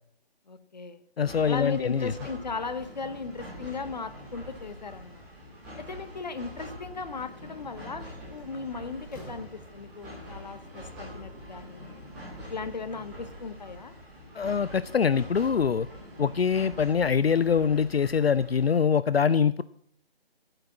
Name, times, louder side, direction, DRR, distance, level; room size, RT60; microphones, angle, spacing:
voice 1, 0.5-1.0 1.4-5.2 5.8-11.9 12.5-13.9, left 4 dB, 45° left, 11 dB, 1.1 m, -37 dB
voice 2, 1.2-2.1 14.3-15.9 16.2-19.6, left 6 dB, 75° left, 17 dB, 0.5 m, -24 dB
sound 1, 1.2-18.8, equal, 5° right, 0.8 m, -44 dB
Slam, 7.9-8.0 8.4-10.2, right 1 dB, 20° left, 4.3 m, -49 dB
10.0 x 9.0 x 7.4 m, 0.66 s
figure-of-eight pair, 155°, 31 cm